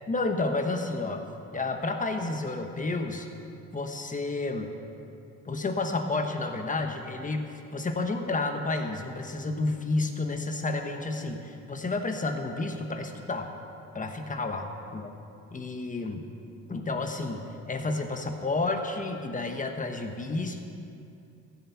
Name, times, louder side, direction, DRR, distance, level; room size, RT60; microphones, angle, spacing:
voice 1, 0.1-1.2 1.5-3.3 3.7-4.7 5.4-13.5 13.9-15.1 15.5-16.2 16.7-20.6, left 3 dB, 25° left, 5 dB, 1.3 m, -31 dB
15.0 x 8.1 x 5.7 m, 2.6 s
cardioid pair, 90°, 30 cm